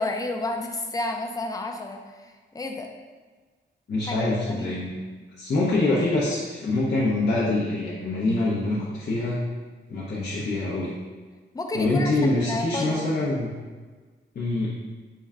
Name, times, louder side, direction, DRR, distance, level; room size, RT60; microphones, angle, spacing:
voice 1, 0.0-2.9 4.0-4.2 4.6-4.7 11.5-13.1, left 2 dB, 20° left, 3 dB, 0.4 m, -31 dB
voice 2, 3.9-4.9 5.4-9.4 9.9-10.9 11.7-13.5 14.3-14.7, left 2 dB, 55° left, -7 dB, 0.6 m, -25 dB
4.5 x 2.2 x 3.6 m, 1.4 s
wide cardioid pair, 125°, 19 cm